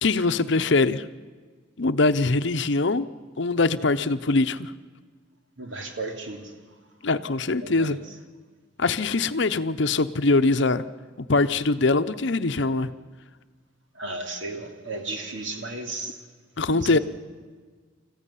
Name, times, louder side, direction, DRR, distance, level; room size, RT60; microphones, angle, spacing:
voice 1, 0.0-1.1 1.8-3.1 3.4-4.7 7.0-8.0 8.8-10.8 11.2-12.9 16.6-17.0, left 3 dB, 60° left, 12 dB, 0.8 m, -22 dB
voice 2, 5.6-6.5 7.6-8.0 13.9-16.2 16.7-17.0, right 2 dB, 65° right, 4 dB, 3.0 m, -34 dB
25.5 x 14.5 x 10.0 m, 1.5 s
head